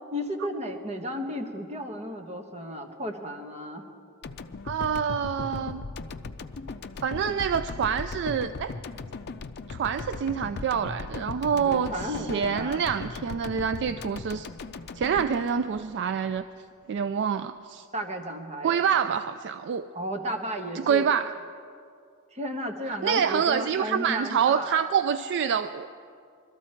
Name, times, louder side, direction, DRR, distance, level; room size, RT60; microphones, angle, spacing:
voice 1, 0.1-3.8 11.5-12.8 17.9-18.9 19.9-21.1 22.3-24.8, equal, 30° right, 3 dB, 1.2 m, -34 dB
sound 1, 4.2-16.4, left 4 dB, 50° left, 0.5 m, -38 dB
voice 2, 4.6-5.8 7.0-8.7 9.7-14.5 14.9-16.4 16.9-17.9 18.6-19.9 20.9-21.3 23.0-25.9, right 7 dB, 55° right, 11 dB, 0.3 m, -26 dB
21.5 x 13.5 x 4.4 m, 2.4 s
head